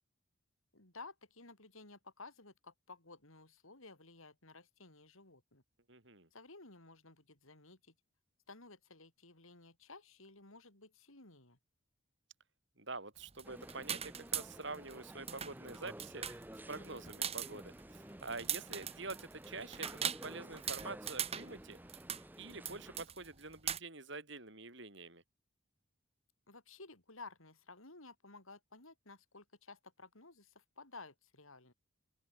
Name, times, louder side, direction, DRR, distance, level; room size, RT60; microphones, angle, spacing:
voice 1, 0.7-5.6 6.3-7.9 8.5-11.6 26.5-31.7, left 3 dB, 80° left, 5.4 m, -55 dB
voice 2, 5.9-6.3 12.8-16.2 16.7-21.8 22.4-25.2, right 3 dB, 60° right, 4.8 m, -46 dB
sound 1, 13.2-14.9 15.2-23.8, right 9 dB, 30° right, 2.2 m, -40 dB
sound 2, 13.4-23.1, right 1 dB, 10° right, 0.9 m, -52 dB
open air
head